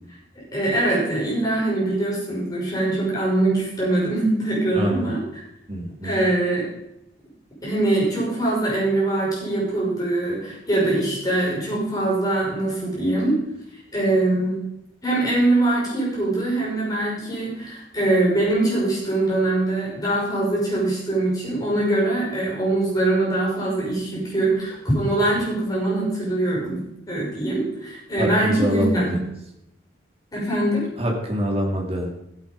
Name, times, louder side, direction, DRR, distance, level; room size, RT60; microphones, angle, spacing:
voice 1, 0.5-5.2 6.0-6.7 7.6-13.4 13.9-14.6 15.0-29.2 30.3-30.8, right 2 dB, 20° left, -5 dB, 6.1 m, -23 dB
voice 2, 4.7-5.1 5.7-6.2 28.2-29.3 31.0-32.1, equal, 35° right, 0 dB, 2.8 m, -25 dB
15.0 x 8.4 x 5.2 m, 0.83 s
head